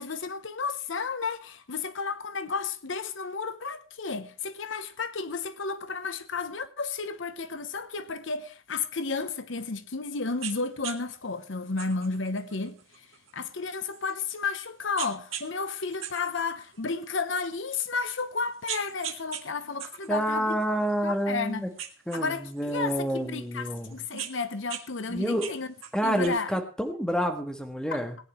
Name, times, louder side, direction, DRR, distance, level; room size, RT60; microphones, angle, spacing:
voice 1, 0.0-13.1 13.3-20.6 21.0-21.7 22.1-25.7 26.0-26.5, left 4 dB, 65° left, 0.9 m, -32 dB
sound 1, 10.4-10.6 10.8-11.0 11.8-14.5 15.0-15.5 15.8-17.2 17.8-17.9 18.4-19.4 19.8-21.4 21.8-23.1 23.8-24.8 25.1-26.3, right 9 dB, 80° right, 1.7 m, -39 dB
voice 2, 20.1-21.7 22.1-24.0 25.1-25.5 25.9-28.2, equal, 5° left, 1.5 m, -28 dB
17.5 x 9.9 x 4.4 m
head